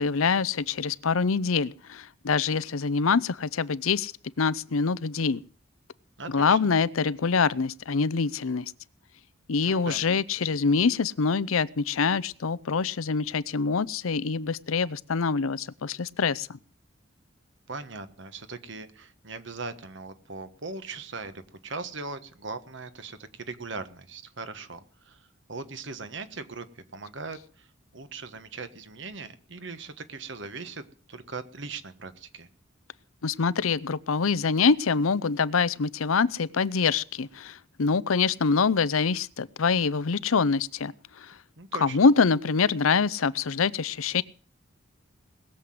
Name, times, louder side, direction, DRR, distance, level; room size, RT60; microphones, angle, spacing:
voice 1, 0.0-4.1 4.4-5.4 6.3-8.7 9.5-16.6 33.2-41.3 41.8-44.2, left 5 dB, 85° left, 0.6 m, -25 dB
voice 2, 6.2-6.6 9.6-10.0 17.7-27.7 27.9-32.5 41.6-42.0, right 3 dB, 60° right, 1.3 m, -39 dB
20.5 x 7.7 x 7.7 m
head